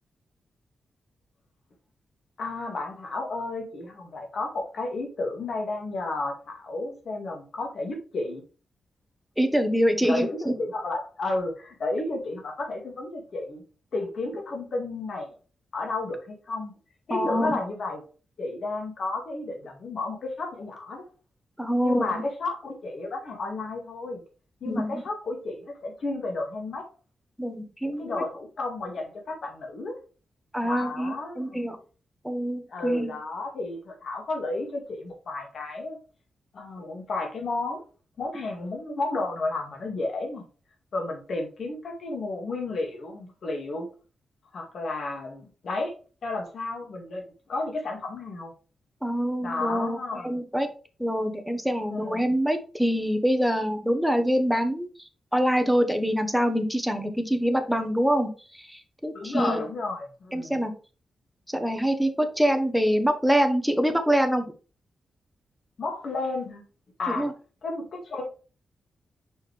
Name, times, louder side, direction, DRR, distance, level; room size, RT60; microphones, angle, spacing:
voice 1, 2.4-8.4 10.0-13.6 13.9-15.3 15.7-16.7 17.1-18.0 18.4-21.0 21.8-24.2 24.6-26.9 27.8-30.0 30.6-31.6 32.7-36.0 36.5-37.8 38.2-40.4 40.9-43.9 44.5-45.9 46.2-48.5 49.4-50.3 51.9-52.2 59.1-60.5 65.8-66.6 67.0-67.3 67.6-68.2, left 2 dB, 65° left, 2 dB, 2.0 m, -32 dB
voice 2, 9.4-10.5 17.1-17.6 21.6-22.2 24.7-24.9 27.4-28.2 30.5-31.8 32.2-33.1 49.0-50.7 51.0-54.9 55.3-59.6 60.3-60.7 61.5-64.5 67.1-67.3, equal, ahead, 7 dB, 1.1 m, -25 dB
5.9 x 4.9 x 3.3 m, 0.36 s
cardioid pair, 95°, 0 cm